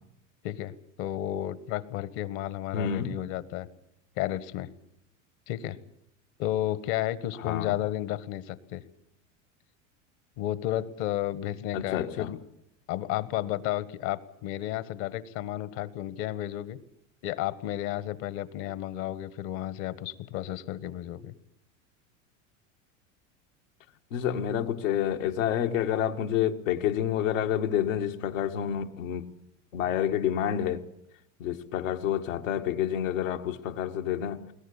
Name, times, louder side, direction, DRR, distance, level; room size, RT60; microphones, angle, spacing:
voice 1, 0.4-3.7 4.2-4.7 5.5-5.8 6.4-8.8 10.4-12.4 12.9-16.8 17.2-21.3, left 13 dB, 60° left, 1.5 m, -32 dB
voice 2, 2.7-3.2 7.4-7.8 11.7-12.3 24.1-29.2 29.7-30.8 31.4-34.5, left 10 dB, 85° left, 1.8 m, -28 dB
22.0 x 18.5 x 8.4 m
supercardioid pair, 100°, 38 cm